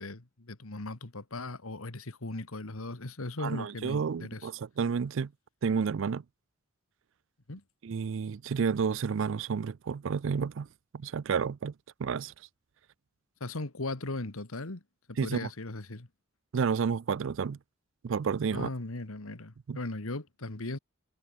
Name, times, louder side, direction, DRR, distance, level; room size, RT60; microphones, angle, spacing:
voice 1, 0.0-4.5 7.5-7.6 13.4-14.8 15.1-16.1 18.5-20.8, left 2 dB, 75° left, 1.8 m, -38 dB
voice 2, 3.4-5.3 5.6-6.2 7.8-10.7 10.9-11.7 12.0-12.3 15.2-15.5 16.5-17.6 18.0-18.7 19.7-19.8, right 6 dB, 60° right, 0.4 m, -30 dB
head